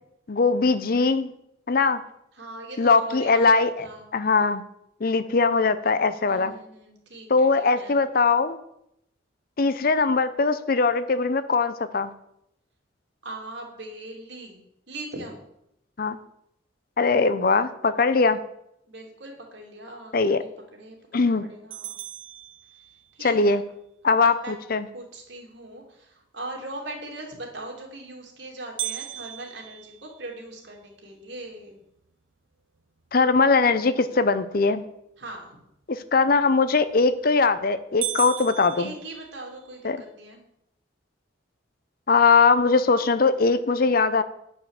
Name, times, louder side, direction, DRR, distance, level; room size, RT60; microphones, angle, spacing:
voice 1, 0.3-1.3 1.7-2.0 2.8-3.9 4.1-4.6 5.0-6.5 7.3-8.6 9.6-12.1 16.0-16.2 17.0-18.4 20.1-20.4 21.1-21.4 23.2-23.6 24.0-24.9 33.1-34.8 35.9-38.9 39.8-40.0 42.1-44.2, left 4 dB, 50° left, 13 dB, 0.6 m, -21 dB
voice 2, 2.3-4.0 6.3-8.0 13.2-15.4 18.9-22.0 23.1-23.6 24.2-24.5 24.9-31.8 35.2-35.6 38.8-40.4, right 2 dB, 65° right, 1 dB, 2.7 m, -40 dB
sound 1, 21.7-23.3 28.8-30.9 31.5-31.6 32.1-32.2 32.8-33.1 36.7-37.2 37.5-37.6 38.0-39.7, right 14 dB, 85° right, 0.7 m, -36 dB
9.4 x 5.7 x 7.2 m, 0.78 s
head